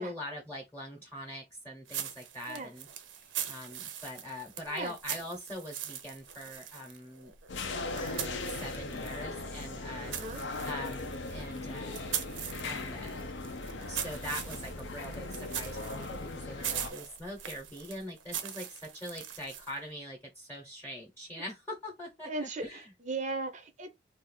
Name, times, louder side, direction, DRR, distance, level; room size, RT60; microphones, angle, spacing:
voice 1, 0.0-2.9 3.2-7.3 7.9-10.4 10.7-12.0 12.3-13.3 13.8-22.9, left 1 dB, 10° left, 0.9 m, -43 dB
sound 1, 1.9-9.3 9.6-19.8, right 9 dB, 85° right, 0.6 m, -41 dB
sound 2, 7.5-16.9, left 2 dB, 70° left, 0.6 m, -39 dB
voice 2, 10.1-10.4 22.2-23.9, right 3 dB, 40° right, 0.5 m, -37 dB
2.6 x 2.4 x 4.1 m
head